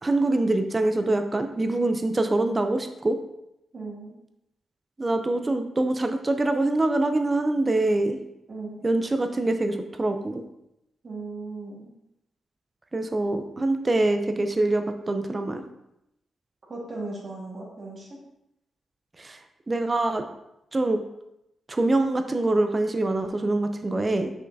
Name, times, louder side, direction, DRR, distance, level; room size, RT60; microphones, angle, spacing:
voice 1, 0.0-3.2 5.0-8.2 8.8-10.4 12.9-15.6 19.2-19.4 19.7-20.2 20.7-21.0 21.7-24.3, right 2 dB, 25° right, 6 dB, 0.5 m, -24 dB
voice 2, 3.7-4.1 8.5-8.9 11.0-11.9 16.7-18.2, right 3 dB, 45° right, -4 dB, 1.9 m, -37 dB
6.3 x 5.5 x 2.7 m, 0.83 s
cardioid pair, 110°, 0 cm